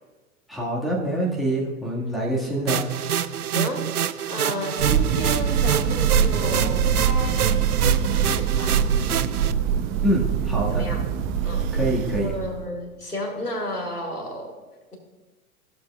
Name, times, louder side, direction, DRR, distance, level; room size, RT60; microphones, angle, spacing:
voice 1, 0.5-2.8 10.0-10.8 11.7-12.3, right 1 dB, ahead, -4 dB, 1.7 m, -25 dB
sound 1, 2.7-9.5, right 9 dB, 85° right, 0.5 m, -26 dB
voice 2, 4.3-7.6 8.2-8.8 10.7-11.0 11.4-11.7 12.2-14.5, equal, 90° left, 0 dB, 2.0 m, -32 dB
Thunder, 4.8-12.7, right 7 dB, 20° right, 0.5 m, -23 dB
15.0 x 6.7 x 2.3 m, 1.2 s
figure-of-eight pair, 95°, 44 cm